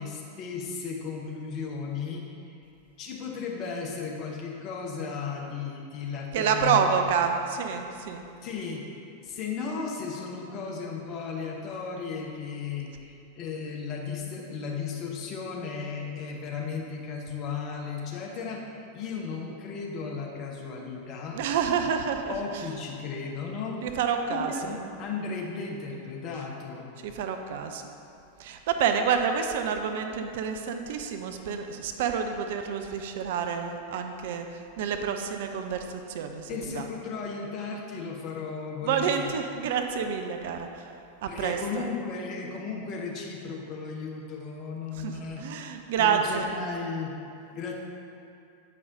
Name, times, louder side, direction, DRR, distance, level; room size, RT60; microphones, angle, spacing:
voice 1, 0.0-2.3 3.0-7.4 8.4-8.9 9.2-18.6 18.9-21.4 22.3-23.8 24.3-26.9 36.5-39.3 41.3-45.4 46.0-47.1 47.5-47.7, left 5 dB, 35° left, -1 dB, 0.9 m, -35 dB
voice 2, 6.3-8.2 21.3-22.7 23.8-24.8 27.0-27.8 28.4-36.9 38.8-40.9 41.2-41.8 44.9-46.5, right 7 dB, 55° right, 5 dB, 0.4 m, -28 dB
8.2 x 5.3 x 2.6 m, 2.6 s
figure-of-eight pair, 90°, 0 cm